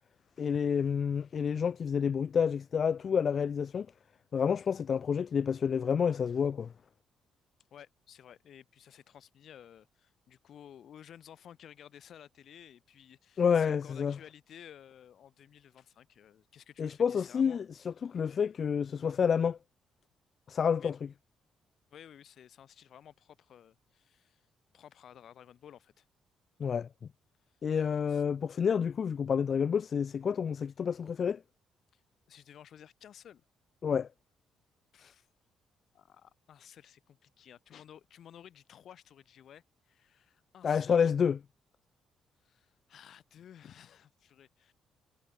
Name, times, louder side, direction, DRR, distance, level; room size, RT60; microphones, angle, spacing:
voice 1, 0.4-3.9 4.3-6.7 13.4-14.2 16.8-19.6 20.5-21.0 26.6-26.9 27.6-31.4 33.8-34.1 35.0-35.1 40.6-41.4, left 7 dB, 50° left, 0.3 m, -29 dB
voice 2, 7.7-17.6 18.0-18.2 20.8-20.9 21.9-24.5 24.7-26.1 27.5-27.6 28.1-28.2 31.9-32.0 32.3-33.4 34.9-35.3 35.9-41.1 42.4-44.7, left 9 dB, 65° left, 5.5 m, -54 dB
cardioid pair, 90°, 0 cm